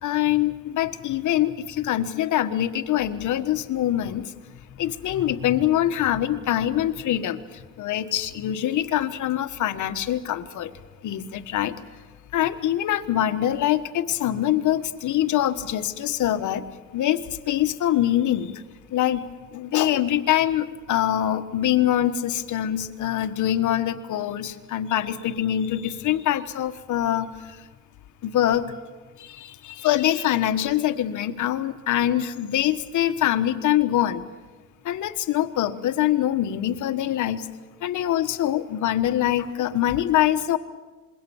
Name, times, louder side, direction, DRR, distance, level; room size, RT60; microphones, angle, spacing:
voice 1, 0.0-4.3 4.8-10.7 11.0-11.8 12.3-16.6 16.9-18.6 18.9-19.2 19.5-27.6 28.2-28.7 29.2-34.2 34.8-37.5 37.8-40.6, left 12 dB, 75° left, 8 dB, 1.5 m, -24 dB
26.5 x 22.0 x 7.2 m, 1.3 s
cardioid pair, 90°, 30 cm